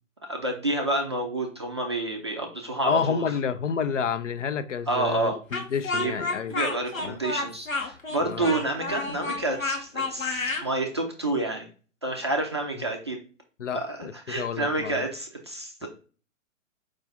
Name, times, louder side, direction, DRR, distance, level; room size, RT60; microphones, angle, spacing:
voice 1, 0.3-3.2 4.9-5.4 5.9-6.1 6.5-11.7 12.0-13.2 13.7-15.9, right 2 dB, 25° right, 0.3 m, -29 dB
voice 2, 2.8-6.5 7.0-7.2 8.2-8.6 13.6-15.1 15.8-15.9, left 6 dB, 70° left, 0.5 m, -29 dB
Speech, 5.5-10.7, left 3 dB, 85° left, 0.9 m, -30 dB
4.8 x 2.3 x 3.9 m
figure-of-eight pair, 120°, 39 cm